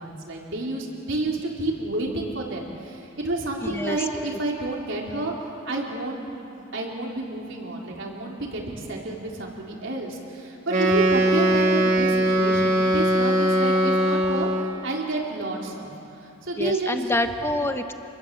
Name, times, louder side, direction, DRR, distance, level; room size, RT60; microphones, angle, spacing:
voice 1, 0.0-5.3 5.6-15.9 16.4-17.0, right 2 dB, 65° right, -2 dB, 4.4 m, -30 dB
voice 2, 3.6-4.0 4.2-4.4 16.6-17.9, left 1 dB, 10° left, 7 dB, 1.1 m, -27 dB
Wind instrument woodwind instrument, 10.7-14.8, right 1 dB, 35° right, 2.3 m, -21 dB
28.5 x 21.0 x 8.0 m, 2.8 s
head